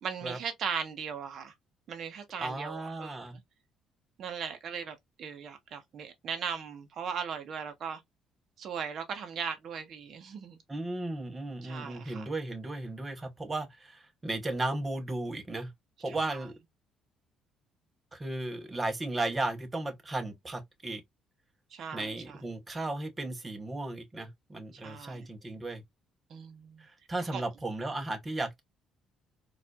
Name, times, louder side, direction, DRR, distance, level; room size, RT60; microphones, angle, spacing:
voice 1, 0.0-1.5 1.9-3.2 4.2-8.0 8.6-10.6 11.6-12.3 16.1-16.2 21.7-22.3 24.7-25.3 26.3-26.8 27.3-27.4, right 6 dB, 55° right, 0.8 m, -38 dB
voice 2, 2.4-3.4 10.7-15.7 16.0-16.5 18.1-21.0 21.9-25.8 26.8-28.6, right 2 dB, 20° right, 0.9 m, -35 dB
4.3 x 2.5 x 2.3 m
cardioid pair, 115°, 0 cm